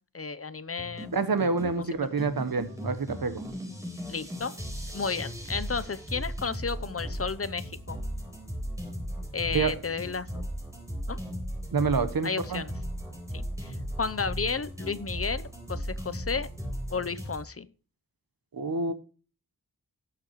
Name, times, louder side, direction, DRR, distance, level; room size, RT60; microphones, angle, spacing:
voice 1, 0.1-1.1 1.8-2.1 4.1-4.5 4.9-8.0 9.3-10.3 11.1-11.2 12.2-12.7 13.3-16.5 16.9-17.7, left 5 dB, 40° left, 14 dB, 0.8 m, -33 dB
sound 1, 0.8-17.4, equal, 10° right, 4.2 m, -37 dB
voice 2, 1.1-3.4 9.5-9.7 11.7-12.6 18.5-18.9, right 4 dB, 70° right, 11 dB, 1.2 m, -27 dB
18.5 x 7.0 x 3.1 m, 0.37 s
wide cardioid pair, 80°, 37 cm